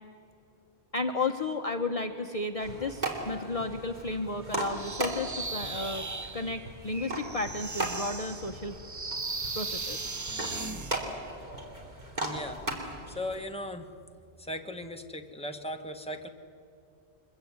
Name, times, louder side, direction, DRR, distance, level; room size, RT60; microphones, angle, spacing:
voice 1, 0.9-6.0 6.3-8.8 9.5-10.1, left 3 dB, 35° left, 4 dB, 1.0 m, -33 dB
sound 1, 2.6-13.4, right 2 dB, 45° right, 3.3 m, -38 dB
sound 2, 4.7-11.0, right 3 dB, 25° right, 0.4 m, -37 dB
voice 2, 12.2-13.9 14.4-16.3, left 1 dB, 5° left, 4 dB, 1.3 m, -38 dB
24.0 x 22.0 x 9.5 m, 2.6 s
omnidirectional pair, 1.1 m